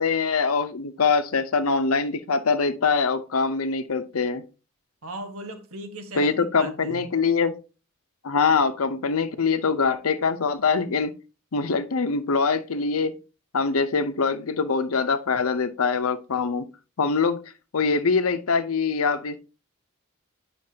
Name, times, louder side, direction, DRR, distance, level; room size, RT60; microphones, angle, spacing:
voice 1, 0.0-4.4 6.1-7.5 8.2-11.1 11.5-13.1 13.5-16.7 17.0-17.4 17.7-19.4, left 5 dB, 85° left, 0.7 m, -23 dB
voice 2, 5.0-7.0, right 1 dB, 85° right, 1.3 m, -38 dB
9.4 x 5.8 x 2.8 m
head